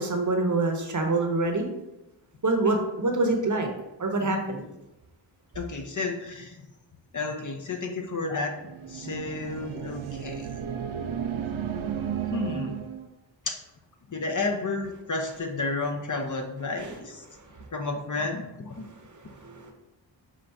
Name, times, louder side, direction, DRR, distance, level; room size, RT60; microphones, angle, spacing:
voice 1, 0.0-1.7 2.4-3.7 4.0-4.7 16.8-17.0 19.4-19.7, right 2 dB, 40° right, 3 dB, 0.8 m, -26 dB
voice 2, 5.5-6.6 7.1-8.5 8.9-10.5 12.3-12.8 13.5-13.6 14.1-17.2 17.7-18.8, left 3 dB, 40° left, 3 dB, 0.7 m, -31 dB
sound 1, 8.5-13.1, right 8 dB, 85° right, 0.6 m, -33 dB
5.6 x 2.5 x 3.3 m, 0.94 s
cardioid pair, 55°, 47 cm